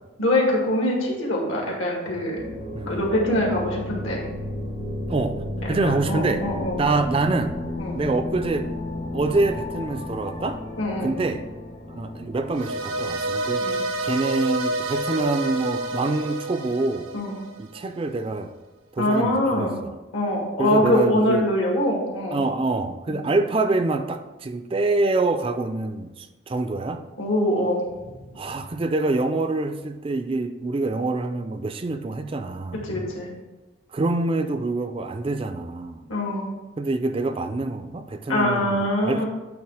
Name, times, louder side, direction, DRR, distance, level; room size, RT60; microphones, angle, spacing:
voice 1, 0.2-2.5 2.9-4.2 5.7-6.8 7.8-8.0 10.8-11.1 13.6-13.8 17.1-17.4 19.0-19.8 20.1-22.4 23.1-23.3 27.2-28.4 32.8-33.3 36.1-36.5 38.3-39.3, left 1 dB, 75° left, -1 dB, 1.9 m, -24 dB
sound 1, 2.4-15.1, left 1 dB, 55° left, 1.6 m, -33 dB
voice 2, 2.7-3.1 5.1-6.5 6.8-7.5 7.9-8.7 9.1-10.6 11.0-11.5 11.9-13.7 14.0-17.1 17.6-18.5 18.9-19.9 20.6-21.5 22.3-27.0 28.4-32.8 33.9-36.0 36.8-39.2, right 2 dB, 25° right, 8 dB, 0.3 m, -26 dB
sound 2, 12.5-17.8, right 2 dB, 85° right, 0.7 m, -29 dB
8.7 x 3.2 x 4.9 m, 1.2 s
head